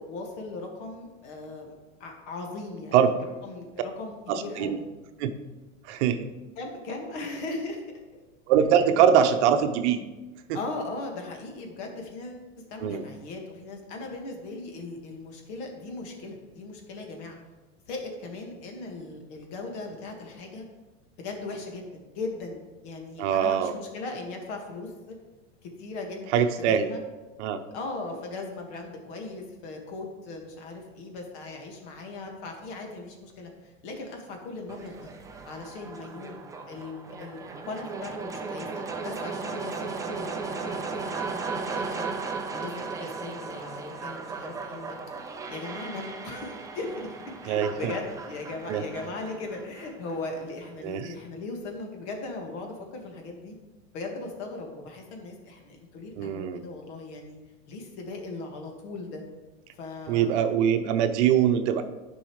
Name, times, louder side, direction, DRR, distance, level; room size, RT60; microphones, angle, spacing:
voice 1, 0.0-1.7 2.0-3.0 3.4-4.9 6.6-7.8 10.5-17.4 17.9-20.7 21.2-25.2 25.6-27.0 27.7-35.1 35.5-36.4 36.6-42.1 42.5-45.0 45.5-53.6 53.9-57.4 57.7-59.2 59.7-60.5, left 3 dB, 60° left, 2 dB, 1.8 m, -38 dB
voice 2, 4.3-4.8 5.2-5.3 5.8-6.3 8.5-10.0 10.5-10.6 12.8-13.0 23.2-23.7 26.3-26.9 27.4-27.6 47.5-47.9 48.7-48.8 50.8-51.1 56.2-56.6 60.1-61.8, right 8 dB, 60° right, 8 dB, 0.8 m, -23 dB
sound 1, 34.7-50.7, right 4 dB, 10° right, 0.4 m, -36 dB
10.5 x 5.5 x 3.1 m, 1.2 s
hypercardioid pair, 120°, 39 cm